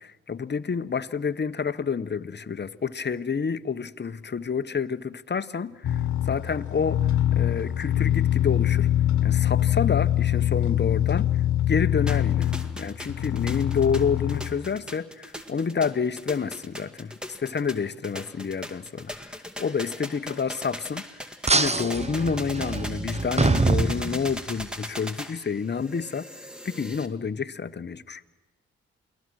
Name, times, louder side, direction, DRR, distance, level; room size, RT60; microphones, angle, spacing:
voice 1, 0.0-8.9 9.2-11.3 11.7-21.0 21.5-26.3 26.6-28.2, left 6 dB, 35° left, 13 dB, 1.0 m, -29 dB
sound 1, 5.8-14.6, left 12 dB, 70° left, 1.3 m, -24 dB
sound 2, 12.1-27.1, left 1 dB, 5° right, 2.0 m, -39 dB
sound 3, 21.5-24.7, right 3 dB, 20° right, 1.0 m, -25 dB
28.5 x 19.5 x 6.2 m, 1.2 s
supercardioid pair, 45°, 30 cm